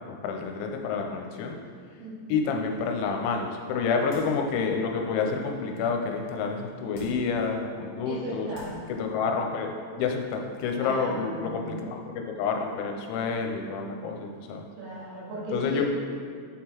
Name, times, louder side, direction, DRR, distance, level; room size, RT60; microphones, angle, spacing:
voice 1, 0.1-1.6 2.3-8.5 8.9-14.6 15.5-15.9, left 5 dB, 90° left, 2 dB, 3.0 m, -29 dB
voice 2, 2.0-2.4 8.0-8.7 10.8-11.7 14.8-15.9, right 1 dB, 70° right, -7 dB, 3.5 m, -37 dB
sound 1, 4.1-4.5 5.0-5.1 6.9-7.4 8.1-8.2 8.5-9.0 9.3-9.4, equal, 65° left, 1.8 m, -43 dB
9.8 x 3.7 x 4.5 m, 2.1 s
omnidirectional pair, 5.4 m